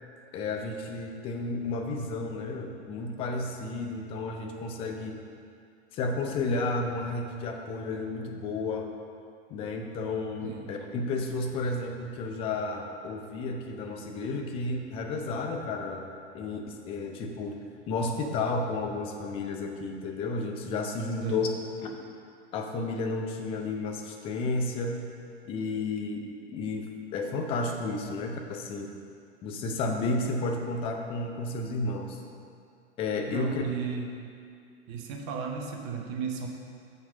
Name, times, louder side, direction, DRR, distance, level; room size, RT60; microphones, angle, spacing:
voice 1, 0.3-5.1 5.9-8.9 9.5-16.1 16.3-17.6 17.9-21.5 21.8-22.0 22.5-25.0 25.5-26.2 26.5-28.9 29.4-32.2 33.0-33.6, left 3 dB, 15° left, 3 dB, 0.5 m, -32 dB
voice 2, 10.4-10.8 21.2-21.5 33.3-34.2 34.9-36.5, right 5 dB, 30° right, 2 dB, 0.9 m, -35 dB
5.8 x 5.4 x 6.4 m, 2.3 s
figure-of-eight pair, 100°, 34 cm